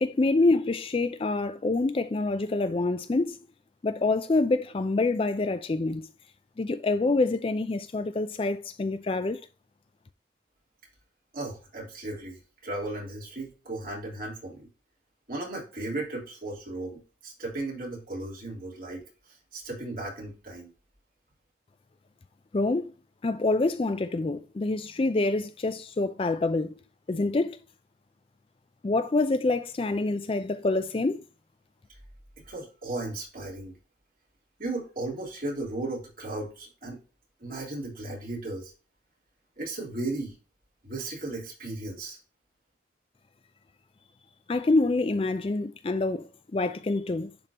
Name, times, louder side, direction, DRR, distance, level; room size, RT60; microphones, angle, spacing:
voice 1, 0.0-3.4 3.8-6.1 6.6-9.4 22.5-22.9 23.2-26.7 27.1-27.6 28.8-31.2 44.5-47.3, left 2 dB, 30° left, 0.4 m, -26 dB
voice 2, 11.3-14.7 15.3-20.7 32.4-33.7 34.6-37.0 37.4-38.7 39.6-40.3 40.8-42.2, right 2 dB, 45° right, 3.4 m, -36 dB
10.5 x 3.8 x 2.9 m
head